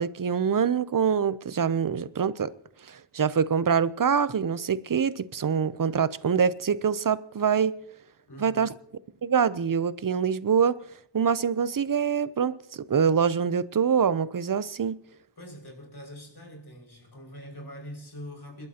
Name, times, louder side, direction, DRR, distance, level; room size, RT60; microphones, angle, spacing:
voice 1, 0.0-2.5 2.9-7.7 8.4-8.7 9.2-10.8 11.1-15.0, right 7 dB, 45° right, 0.6 m, -25 dB
voice 2, 8.3-8.8 15.4-18.7, equal, 60° left, 5.8 m, -43 dB
29.0 x 12.5 x 2.9 m
wide cardioid pair, 75°, 44 cm